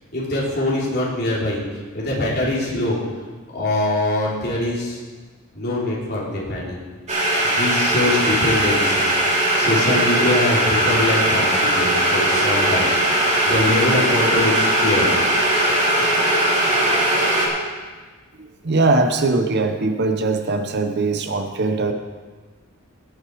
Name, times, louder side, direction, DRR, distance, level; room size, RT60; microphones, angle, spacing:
voice 1, 0.1-1.6 1.9-3.0 3.5-5.0 5.5-6.8 7.4-9.1 9.5-13.0 13.4-15.2, left 1 dB, 45° left, -5 dB, 3.2 m, -23 dB
sound 1, 7.1-17.5, right 1 dB, 30° right, 2.5 m, -19 dB
voice 2, 18.4-21.9, right 3 dB, 50° right, 6 dB, 0.8 m, -21 dB
17.5 x 6.5 x 4.6 m, 1.4 s
head